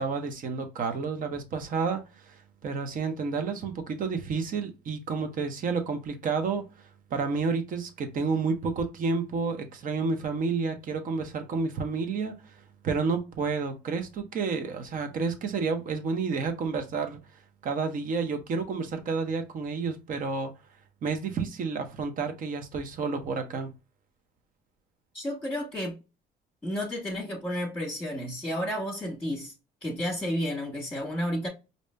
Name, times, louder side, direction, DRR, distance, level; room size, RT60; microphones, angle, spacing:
voice 1, 0.0-17.2 17.6-20.5 21.0-23.7, right 4 dB, 55° right, 1.0 m, -30 dB
voice 2, 25.1-26.0 26.6-29.5 29.8-31.5, equal, 5° left, 1.3 m, -31 dB
4.9 x 2.7 x 2.2 m
cardioid pair, 110°, 17 cm